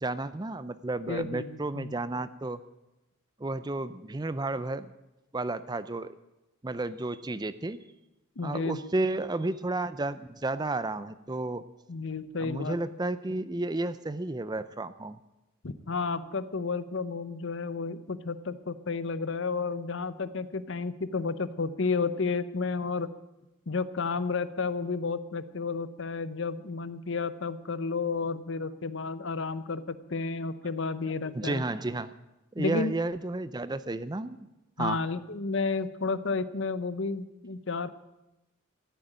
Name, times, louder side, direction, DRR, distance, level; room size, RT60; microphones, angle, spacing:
voice 1, 0.0-2.6 3.4-4.9 5.3-6.2 6.6-7.8 8.4-11.6 12.4-15.2 31.3-32.1 32.5-34.5 34.8-35.0, right 2 dB, 20° right, 14 dB, 0.5 m, -32 dB
voice 2, 1.1-1.9 8.4-8.9 11.9-12.8 15.6-23.1 23.7-31.6 32.6-32.9 34.8-37.9, left 4 dB, 60° left, 14 dB, 0.7 m, -32 dB
14.0 x 9.0 x 9.1 m, 0.97 s
head